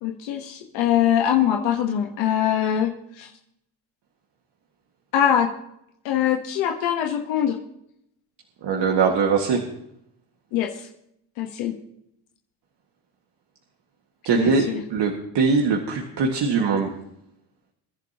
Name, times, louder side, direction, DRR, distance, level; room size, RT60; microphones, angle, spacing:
voice 1, 0.0-3.3 5.1-5.5 6.0-7.6 10.5-10.9 11.4-11.7 14.3-14.8, left 10 dB, 90° left, 2 dB, 1.3 m, -23 dB
voice 2, 8.6-9.6 14.2-16.9, right 5 dB, 60° right, 1 dB, 2.0 m, -21 dB
23.5 x 10.5 x 3.0 m, 0.77 s
supercardioid pair, 80°, 45 cm